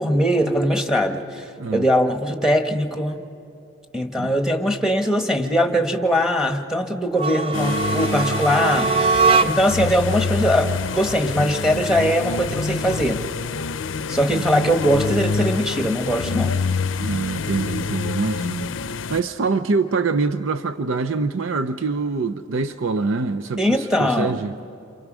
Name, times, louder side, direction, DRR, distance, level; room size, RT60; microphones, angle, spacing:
voice 1, 0.0-1.4 1.7-3.2 3.9-9.1 9.4-13.2 14.1-16.5 23.6-24.4, equal, 5° right, 1.3 m, -21 dB
sound 1, 7.1-9.9, right 4 dB, 30° right, 0.5 m, -21 dB
sound 2, 7.5-19.2, left 5 dB, 70° left, 0.5 m, -26 dB
voice 2, 17.0-18.7 19.1-24.5, right 4 dB, 85° right, 0.6 m, -24 dB
28.0 x 27.5 x 6.2 m
head